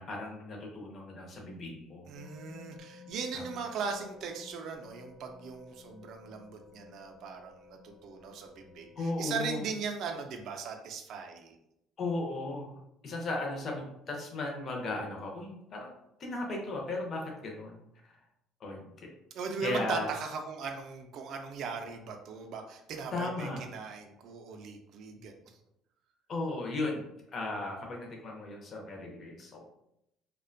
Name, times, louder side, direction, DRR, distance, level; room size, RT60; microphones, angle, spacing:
voice 1, 0.0-2.1 3.3-3.4 9.0-9.7 12.0-12.8 13.0-15.9 16.2-17.8 18.0-18.2 18.6-19.1 19.6-20.1 23.1-23.7 26.3-29.6, left 2 dB, 35° left, 0 dB, 0.5 m, -36 dB
sound 1, 2.1-9.5, left 5 dB, 50° left, 0.8 m, -55 dB
voice 2, 2.1-11.6 19.3-25.3, right 5 dB, 50° right, 3 dB, 0.3 m, -38 dB
2.4 x 2.1 x 2.5 m, 0.81 s
cardioid pair, 155°, 0 cm